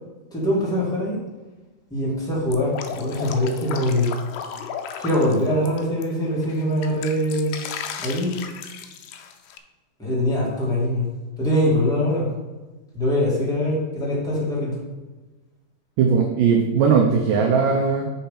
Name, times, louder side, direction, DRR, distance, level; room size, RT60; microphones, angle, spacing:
voice 1, 0.3-1.2 1.9-4.1 5.0-7.5 8.0-8.4 10.0-11.1 11.4-12.3 12.9-14.8, left 1 dB, ahead, -6 dB, 0.8 m, -23 dB
Drip, 2.5-6.0 6.4-9.6, left 7 dB, 80° left, 2.2 m, -35 dB
voice 2, 16.0-18.1, right 6 dB, 80° right, 1 dB, 1.9 m, -19 dB
7.3 x 5.5 x 5.8 m, 1.2 s
omnidirectional pair, 4.7 m